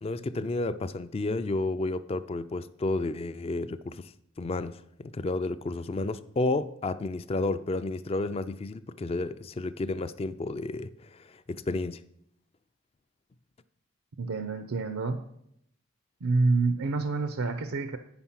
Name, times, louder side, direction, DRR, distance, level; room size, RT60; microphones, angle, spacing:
voice 1, 0.0-4.1 4.4-12.0, left 2 dB, 25° left, 0.3 m, -31 dB
voice 2, 14.2-15.2 16.2-18.0, right 3 dB, 85° right, 0.6 m, -27 dB
8.8 x 5.8 x 5.7 m
head